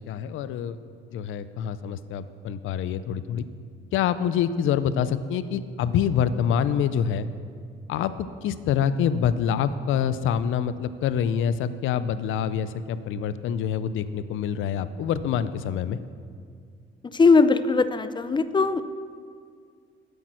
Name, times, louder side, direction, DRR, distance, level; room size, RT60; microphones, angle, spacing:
voice 1, 0.1-0.8 1.1-3.5 3.9-7.3 7.9-16.0, left 8 dB, 80° left, 14 dB, 0.5 m, -26 dB
voice 2, 17.1-18.8, left 4 dB, 25° left, 12 dB, 0.5 m, -19 dB
8.6 x 8.1 x 6.3 m, 2.1 s
cardioid pair, 90°, 20 cm